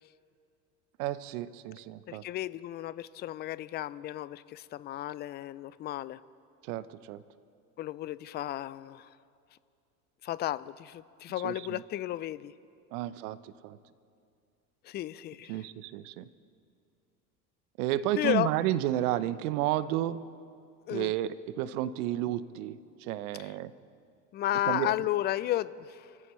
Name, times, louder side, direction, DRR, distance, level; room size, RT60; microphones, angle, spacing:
voice 1, 1.0-2.2 6.6-7.2 11.4-11.8 12.9-13.8 15.5-16.2 17.8-20.2 20.9-23.7 24.7-24.9, right 13 dB, 65° right, 15 dB, 1.0 m, -32 dB
voice 2, 2.1-6.2 7.8-9.1 10.2-12.5 14.8-15.6 18.2-18.5 20.9-21.1 23.4-23.5 24.3-26.1, left 14 dB, 25° left, 18 dB, 0.3 m, -33 dB
29.5 x 14.5 x 3.2 m, 2.4 s
hypercardioid pair, 85°, 48 cm